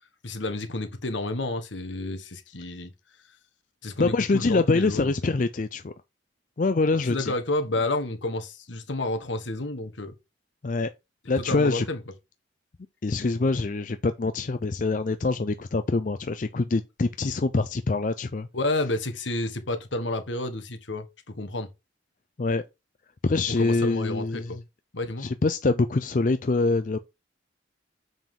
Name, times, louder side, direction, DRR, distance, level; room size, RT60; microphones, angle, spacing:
voice 1, 0.2-2.9 3.8-5.1 7.1-10.1 11.5-12.0 18.5-21.1 21.3-21.7 23.6-24.6 24.9-25.3, left 2 dB, 75° left, 1.4 m, -30 dB
voice 2, 4.0-5.9 6.6-7.3 10.6-10.9 11.3-11.8 13.0-18.5 22.4-22.6 23.2-24.6 25.2-27.0, left 3 dB, 45° left, 0.5 m, -25 dB
7.3 x 5.4 x 3.7 m
head